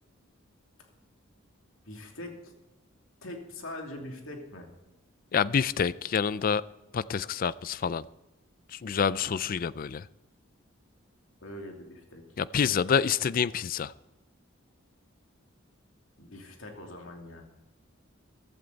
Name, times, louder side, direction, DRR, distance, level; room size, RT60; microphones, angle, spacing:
voice 1, 1.9-2.5 3.2-4.7 9.1-9.2 11.4-12.2 12.5-12.7 16.2-17.4, left 1 dB, 80° left, 2 dB, 2.7 m, -42 dB
voice 2, 5.3-6.6 6.9-8.1 8.7-10.1 12.4-13.9, left 7 dB, 45° left, 19 dB, 0.4 m, -27 dB
15.0 x 12.5 x 4.0 m, 1.0 s
head